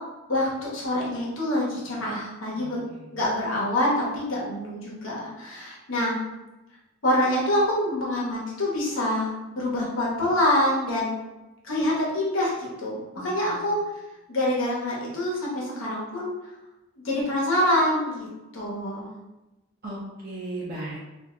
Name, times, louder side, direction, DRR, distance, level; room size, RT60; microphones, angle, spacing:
voice 1, 0.3-2.8 3.1-6.2 7.0-11.1 11.6-13.8 14.3-16.3 17.0-18.3 18.5-19.1, left 1 dB, 85° left, -4 dB, 0.9 m, -26 dB
voice 2, 2.6-3.0 13.1-13.7 19.8-21.0, right 2 dB, 50° right, -6 dB, 0.6 m, -37 dB
2.5 x 2.1 x 3.7 m, 1.0 s
head